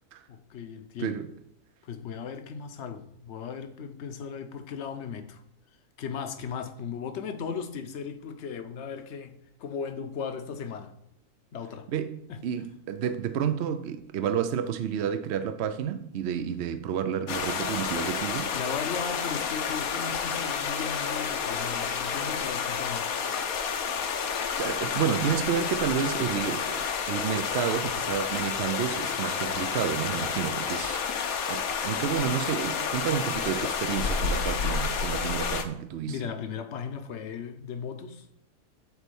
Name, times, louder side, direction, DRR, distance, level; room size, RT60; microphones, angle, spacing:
voice 1, 0.3-1.2 1.8-5.4 6.0-10.9 11.5-11.9 12.3-12.4 18.5-23.1 36.1-38.3, left 6 dB, 55° left, 1.0 m, -37 dB
voice 2, 1.0-1.3 11.9-18.5 24.2-31.1 31.5-36.2, right 8 dB, 60° right, 0.7 m, -30 dB
sound 1, 17.3-35.6, left 6 dB, 75° left, 1.3 m, -30 dB
8.1 x 4.2 x 6.9 m
omnidirectional pair, 1.5 m